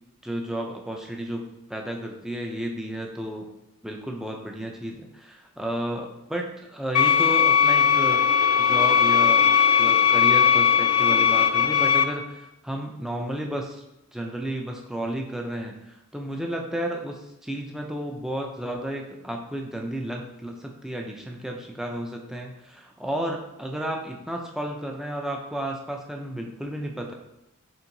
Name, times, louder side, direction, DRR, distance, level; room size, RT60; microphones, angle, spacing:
voice 1, 0.2-3.5 3.8-8.3 8.6-9.5 9.8-13.8 14.1-27.1, right 1 dB, ahead, 1 dB, 0.4 m, -32 dB
sound 1, 6.9-12.0, left 7 dB, 80° left, 0.4 m, -19 dB
4.5 x 3.7 x 2.6 m, 0.89 s
head